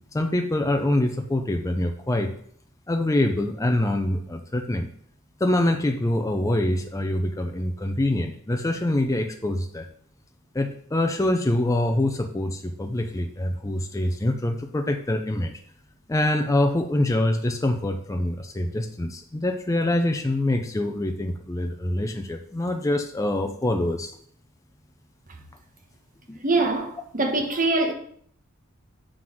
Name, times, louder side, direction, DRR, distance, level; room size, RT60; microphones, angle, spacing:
voice 1, 0.1-2.3 2.9-4.9 5.4-9.9 10.5-15.5 16.1-24.1 26.3-26.4, left 1 dB, 15° left, 0.5 m, -25 dB
voice 2, 26.4-27.9, right 2 dB, 40° right, 1.2 m, -23 dB
7.7 x 3.8 x 6.1 m
head